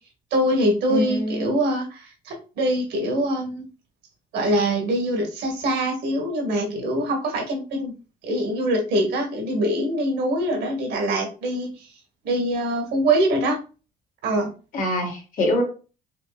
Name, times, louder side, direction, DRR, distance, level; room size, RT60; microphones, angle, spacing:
voice 1, 0.3-3.7 4.3-7.9 8.2-11.9 12.2-13.6 14.2-14.5, right 1 dB, 75° right, 2 dB, 1.8 m, -24 dB
voice 2, 0.9-1.5 14.7-15.6, left 1 dB, 55° left, 1 dB, 1.8 m, -24 dB
5.0 x 2.9 x 2.4 m, 0.34 s
cardioid pair, 110°, 17 cm